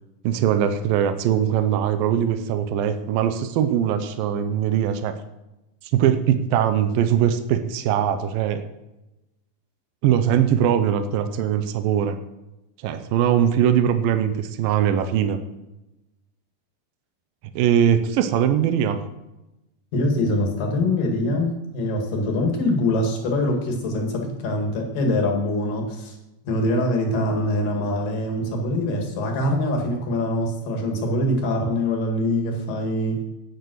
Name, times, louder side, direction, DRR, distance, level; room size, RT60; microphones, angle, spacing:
voice 1, 0.2-5.1 5.9-8.7 10.0-12.2 12.8-15.4 17.6-19.0, right 9 dB, 85° right, 9 dB, 2.5 m, -21 dB
voice 2, 19.9-26.2 26.5-33.2, left 1 dB, 70° left, 2 dB, 3.7 m, -24 dB
9.6 x 9.0 x 6.3 m, 0.98 s
omnidirectional pair, 4.0 m